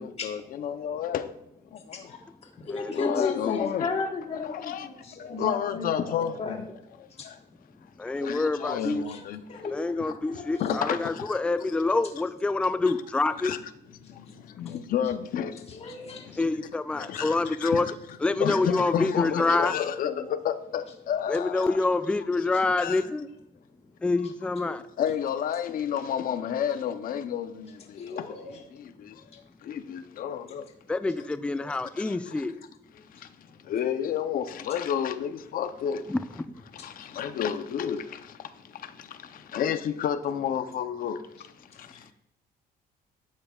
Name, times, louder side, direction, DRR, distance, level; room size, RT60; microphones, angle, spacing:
voice 1, 0.0-1.3 1.7-2.1 2.9-3.9 4.3-6.6 7.0-7.4 8.1-9.4 10.1-10.2 10.6-11.4 13.4-13.6 14.0-16.4 16.9-17.8 18.4-21.8 22.8-23.0 25.0-29.2 29.6-30.7 32.0-32.3 33.1-33.3 33.6-36.1 36.7-42.1, left 9 dB, 55° left, 0.7 m, -31 dB
voice 2, 1.9-6.6 7.2-7.3 8.8-9.2 9.5-9.8 10.3-10.7 14.7-14.8 15.7-16.4 18.7-20.3 24.6-24.7 26.7-26.8 28.0-28.6 31.6-31.8 36.8-36.9 41.9-42.0, left 4 dB, 35° left, 1.4 m, -35 dB
voice 3, 2.7-3.3 8.0-9.0 9.6-13.5 16.4-17.9 18.2-19.7 21.3-23.3 24.0-24.8 30.9-32.5 36.1-36.5, left 3 dB, 5° left, 0.4 m, -27 dB
12.0 x 8.7 x 2.4 m
cardioid pair, 110°, 17 cm